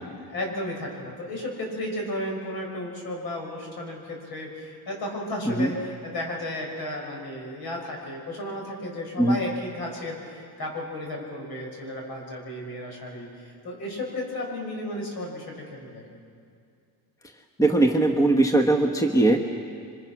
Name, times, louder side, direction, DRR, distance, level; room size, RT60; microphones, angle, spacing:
voice 1, 0.2-16.0, left 1 dB, 70° left, 0 dB, 6.6 m, -34 dB
voice 2, 17.6-19.4, right 2 dB, 10° left, 4 dB, 1.2 m, -20 dB
28.0 x 24.5 x 6.0 m, 2.3 s
cardioid pair, 145°, 39 cm